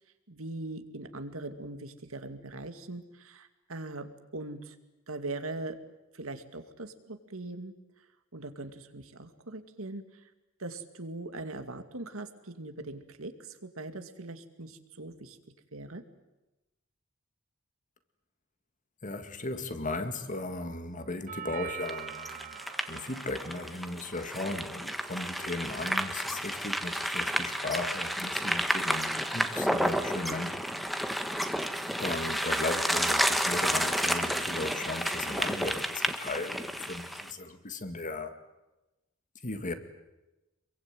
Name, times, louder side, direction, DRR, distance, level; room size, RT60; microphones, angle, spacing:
voice 1, 0.3-4.8 5.1-5.8 6.1-7.7 8.3-10.2 10.6-15.4 15.7-16.0, right 2 dB, 75° right, 2.4 m, -41 dB
voice 2, 19.0-22.6 22.9-30.7 32.0-38.3 39.4-39.7, left 2 dB, 40° left, 2.1 m, -36 dB
Doorbell, 21.3-29.3, right 9 dB, 40° right, 3.1 m, -47 dB
sound 1, 21.9-37.3, equal, ahead, 1.5 m, -31 dB
27.0 x 23.0 x 9.2 m
head